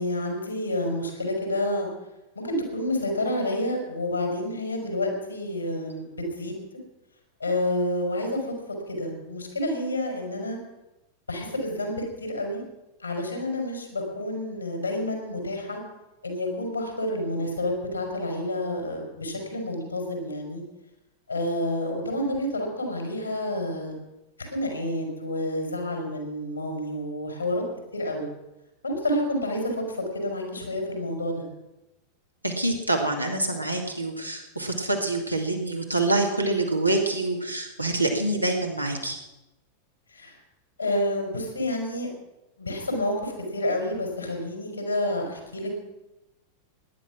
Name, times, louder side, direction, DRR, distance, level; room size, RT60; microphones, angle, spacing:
voice 1, 0.0-1.9 2.3-6.7 7.4-8.5 8.9-10.6 11.3-12.6 13.0-15.8 16.2-20.6 21.3-24.0 24.4-27.6 27.9-28.3 28.8-31.4 40.1-40.4 40.8-42.1 42.6-45.7, left 1 dB, 80° left, 2 dB, 4.5 m, -29 dB
voice 2, 32.4-39.2, right 2 dB, 85° right, 2 dB, 2.4 m, -26 dB
18.0 x 11.0 x 6.0 m, 0.98 s
figure-of-eight pair, 90°, 0 cm